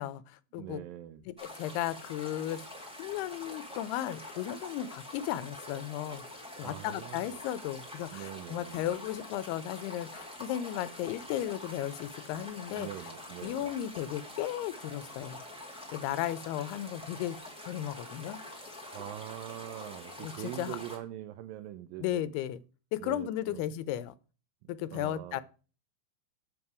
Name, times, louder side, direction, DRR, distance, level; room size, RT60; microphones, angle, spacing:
voice 1, 0.0-0.8 1.3-2.6 3.0-6.2 6.6-12.9 13.4-15.4 15.9-17.4 17.7-18.4 20.2-20.8 22.0-22.6 22.9-24.1 24.7-25.4, left 12 dB, 85° left, 2.7 m, -35 dB
voice 2, 0.6-1.2 6.6-7.4 8.1-8.9 12.7-13.7 18.9-22.3 23.0-23.7 24.6-25.4, right 13 dB, 80° right, 2.1 m, -43 dB
sound 1, 1.4-21.0, left 1 dB, 5° right, 0.8 m, -46 dB
8.2 x 7.2 x 4.8 m
omnidirectional pair, 4.5 m